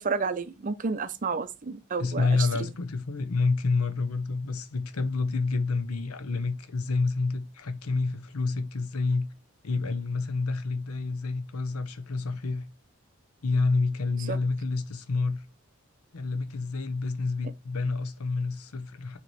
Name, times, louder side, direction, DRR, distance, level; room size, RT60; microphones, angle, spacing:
voice 1, 0.0-2.7 14.3-14.4, right 4 dB, 35° right, 0.5 m, -31 dB
voice 2, 2.0-9.2 9.6-12.6 13.4-15.4 16.1-19.2, left 3 dB, 80° left, 0.8 m, -28 dB
6.9 x 3.0 x 4.6 m
head